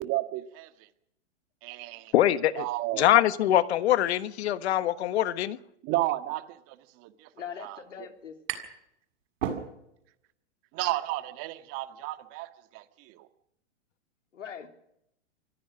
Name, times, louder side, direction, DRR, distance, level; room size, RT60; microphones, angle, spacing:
voice 1, 0.1-0.7 1.6-2.1 2.6-3.1 5.8-7.3 7.6-7.8 10.7-13.3, right 17 dB, 40° right, 8 dB, 2.0 m, -33 dB
voice 2, 2.1-2.6 3.0-5.6, left 12 dB, 60° left, 13 dB, 1.4 m, -23 dB
voice 3, 7.3-8.4 14.3-14.7, left 8 dB, 80° left, 5 dB, 3.5 m, -41 dB
sound 1, 7.4-7.5 7.7-8.9 9.2-10.1, right 8 dB, 65° right, 6.9 m, -35 dB
26.0 x 16.0 x 6.4 m, 0.78 s
hypercardioid pair, 120°, 36 cm